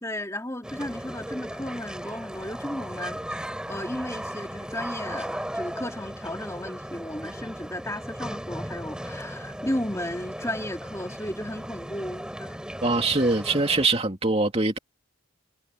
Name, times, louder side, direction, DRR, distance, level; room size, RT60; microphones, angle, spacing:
voice 1, 0.0-12.6, left 1 dB, 15° left, 2.7 m, -34 dB
sound 1, 0.6-13.9, equal, 5° right, 3.6 m, -36 dB
voice 2, 12.8-14.8, right 3 dB, 25° right, 2.8 m, -23 dB
head